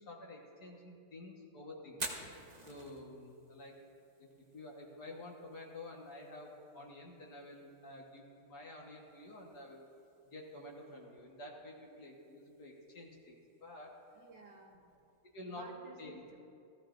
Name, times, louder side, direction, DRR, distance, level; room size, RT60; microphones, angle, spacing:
voice 1, 0.0-2.0 2.7-3.8 4.5-9.9 10.3-14.0 15.3-15.7 16.0-16.2, left 2 dB, 50° left, -1 dB, 1.8 m, -50 dB
Fire, 1.9-15.8, right 2 dB, 35° right, 0.7 m, -53 dB
voice 2, 14.1-15.1 15.5-16.5, right 3 dB, 60° right, 0 dB, 1.5 m, -55 dB
16.5 x 14.5 x 2.6 m, 2.5 s
omnidirectional pair, 2.4 m